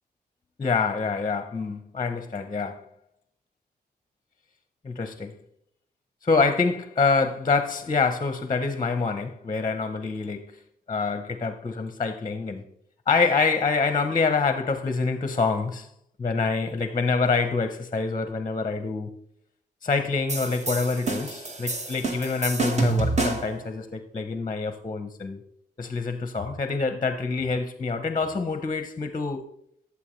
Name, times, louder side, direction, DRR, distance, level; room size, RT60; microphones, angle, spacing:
voice 1, 0.6-2.8 4.8-5.4 6.2-10.6 10.9-12.6 13.1-15.9 16.2-19.2 19.8-25.4 25.8-29.4, left 4 dB, 25° left, 0.7 m, -26 dB
sound 1, 20.3-23.6, right 3 dB, 40° right, 1.5 m, -28 dB
12.5 x 7.2 x 3.1 m
cardioid pair, 100°, 17 cm